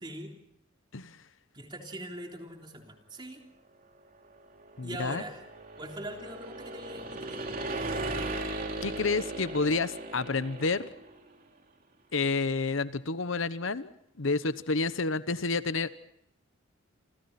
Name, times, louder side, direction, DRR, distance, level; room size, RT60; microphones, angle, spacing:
voice 1, 0.0-0.3 1.5-3.4 4.8-5.4 5.8-7.8, right 1 dB, 25° right, 2 dB, 3.5 m, -42 dB
sound 1, 4.3-11.2, right 2 dB, 45° right, 3.2 m, -37 dB
voice 2, 4.8-5.2 8.8-10.9 12.1-13.9 14.2-15.9, left 3 dB, 70° left, 13 dB, 1.0 m, -29 dB
28.5 x 28.0 x 4.2 m, 0.75 s
head